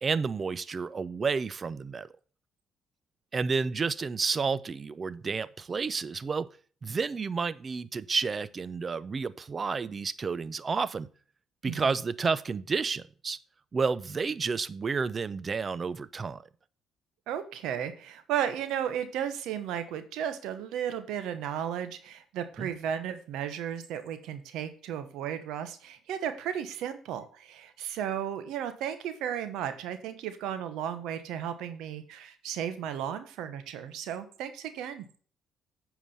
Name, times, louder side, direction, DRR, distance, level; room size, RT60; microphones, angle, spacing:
voice 1, 0.0-2.1 3.3-6.5 6.8-11.1 11.6-13.4 13.7-16.4 22.6-22.7, right 5 dB, 40° right, 0.6 m, -30 dB
voice 2, 17.3-35.0, right 9 dB, 80° right, 1.1 m, -34 dB
9.0 x 4.9 x 5.5 m
supercardioid pair, 75°, 0 cm